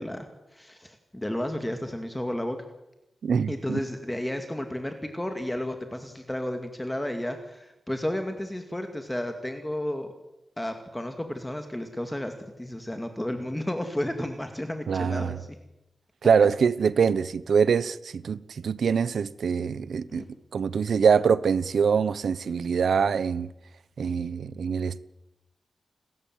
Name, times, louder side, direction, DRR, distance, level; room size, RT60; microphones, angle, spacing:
voice 1, 0.0-2.6 3.5-10.1 10.6-15.5 20.1-20.3, left 1 dB, 10° left, 2.3 m, -32 dB
voice 2, 3.2-3.8 14.9-15.4 16.2-20.2 20.5-23.5 24.0-25.0, right 6 dB, 80° right, 1.0 m, -24 dB
29.5 x 13.5 x 9.4 m
wide cardioid pair, 115°, 0 cm